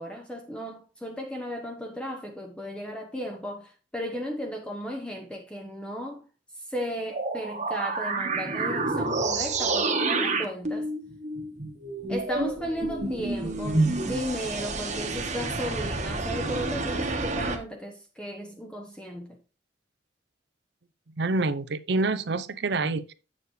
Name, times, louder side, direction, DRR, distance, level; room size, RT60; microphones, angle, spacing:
voice 1, 0.0-6.2 6.7-10.9 12.1-19.4, equal, 5° left, 0.8 m, -35 dB
sound 1, 7.1-17.6, right 3 dB, 40° right, 1.3 m, -29 dB
voice 2, 21.2-23.1, right 3 dB, 60° right, 0.6 m, -27 dB
8.5 x 6.8 x 3.2 m
head